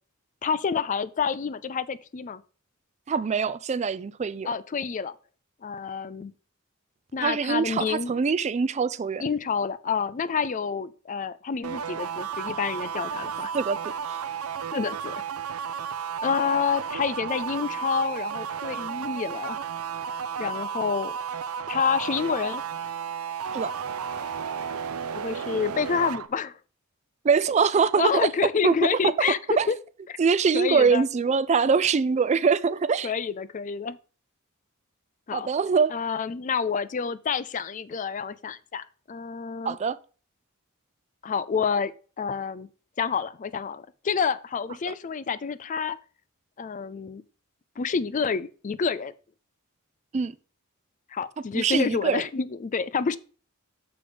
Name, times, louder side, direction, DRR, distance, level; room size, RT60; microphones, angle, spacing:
voice 1, 0.4-2.4 4.4-5.1 5.6-6.3 7.1-8.1 9.2-13.5 14.7-15.2 16.2-19.6 20.4-21.2 21.7-22.6 25.1-26.6 28.0-29.8 30.1-30.2 30.5-31.0 33.0-34.0 35.3-35.5 35.9-39.8 41.2-42.7 43.0-46.0 46.6-47.2 47.8-49.1 51.1-53.2, left 6 dB, 35° left, 0.4 m, -28 dB
voice 2, 3.1-4.5 7.2-9.3 13.5-13.8 14.1-14.2 23.5-23.7 27.2-28.3 28.6-28.8 29.0-29.1 29.6-29.7 30.2-33.1 35.3-35.9 39.6-40.0 50.1-50.3 51.5-52.2, right 5 dB, 30° right, 0.3 m, -23 dB
sound 1, 11.6-26.3, right 7 dB, 90° right, 0.6 m, -33 dB
6.8 x 5.1 x 5.0 m
head